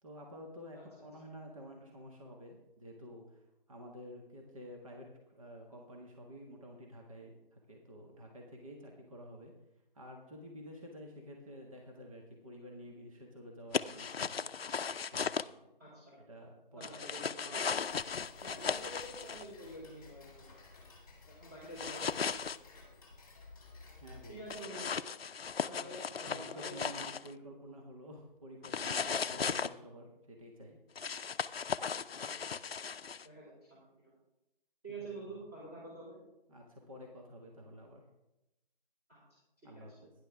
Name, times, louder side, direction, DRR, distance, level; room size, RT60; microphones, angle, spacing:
voice 1, 0.0-9.5 9.9-14.5 15.1-15.4 16.3-16.9 24.0-24.8 25.8-25.9 26.2-30.8 35.2-35.3 36.5-38.0 39.6-40.1, equal, 35° right, 1 dB, 1.5 m, -50 dB
sound 1, 13.7-15.4 16.8-19.5 21.8-22.6 24.5-27.3 28.6-29.7 31.0-33.3, left 6 dB, 85° left, 0.6 m, -37 dB
voice 2, 15.8-16.2 16.7-17.8 18.4-20.5 21.2-22.5 24.3-24.9 25.6-26.8 29.3-29.6 32.1-32.5 33.2-34.1 34.8-36.2 39.1-39.2 39.9-40.0, right 1 dB, 15° right, -11 dB, 3.0 m, -48 dB
Tick-tock, 17.8-24.6, left 3 dB, 20° left, 1.9 m, -56 dB
12.0 x 9.9 x 3.6 m, 0.92 s
figure-of-eight pair, 175°, 29 cm